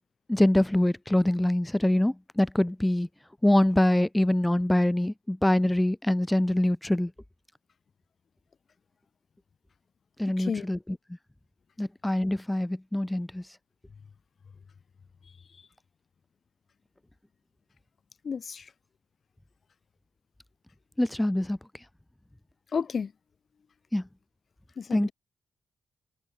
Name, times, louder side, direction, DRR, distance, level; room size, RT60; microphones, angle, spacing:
voice 1, 0.3-3.1 3.4-7.1 10.2-10.8 11.8-13.4 21.0-21.6 23.9-24.0 24.9-25.1, left 1 dB, 10° left, 0.9 m, -24 dB
voice 2, 18.2-18.7 22.7-23.1 24.8-25.1, left 6 dB, 55° left, 0.5 m, -31 dB
cardioid pair, 75°, 0 cm